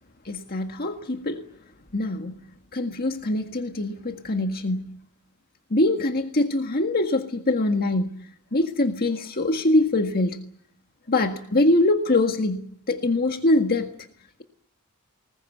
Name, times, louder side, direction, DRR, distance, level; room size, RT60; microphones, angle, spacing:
voice 1, 0.2-1.4 1.9-2.4 2.7-4.9 5.7-8.1 8.5-10.4 11.1-12.6 12.9-13.9, left 2 dB, 45° left, 1.7 m, -23 dB
21.5 x 20.0 x 9.4 m
head